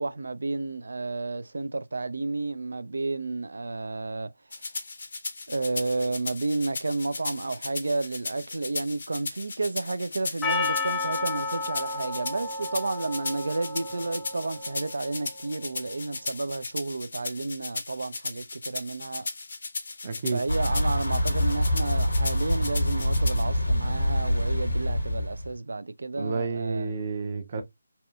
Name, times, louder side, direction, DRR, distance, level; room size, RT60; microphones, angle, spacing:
voice 1, 0.0-4.3 5.5-19.3 20.3-26.9, right 3 dB, 70° right, 0.3 m, -31 dB
sound 1, 4.5-23.4, left 3 dB, 55° left, 0.6 m, -37 dB
Percussion, 10.4-15.0, left 3 dB, 10° left, 0.4 m, -32 dB
voice 2, 20.0-20.4 26.2-27.6, right 4 dB, 40° right, 0.7 m, -30 dB
Thunder / Bicycle, 20.5-25.5, equal, 90° left, 0.8 m, -25 dB
2.7 x 2.1 x 2.3 m
figure-of-eight pair, 155°, 0 cm